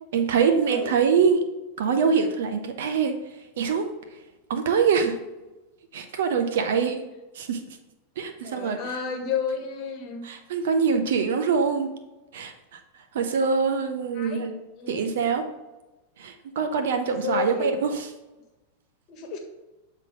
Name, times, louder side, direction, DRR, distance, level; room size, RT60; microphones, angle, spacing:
voice 1, 0.1-1.5 1.8-3.1 3.6-3.9 4.5-5.2 5.9-7.0 7.3-7.8 8.2-9.0 10.2-11.9 12.3-12.8 13.1-14.5 14.9-15.4 16.2-18.1, right 6 dB, 60° right, 6 dB, 0.8 m, -24 dB
voice 2, 0.6-0.9 8.4-10.3 14.1-14.4 14.8-15.0 17.2-17.8 19.1-19.4, left 7 dB, 40° left, 4 dB, 1.3 m, -31 dB
7.6 x 3.9 x 4.7 m, 1.1 s
figure-of-eight pair, 90°, 0 cm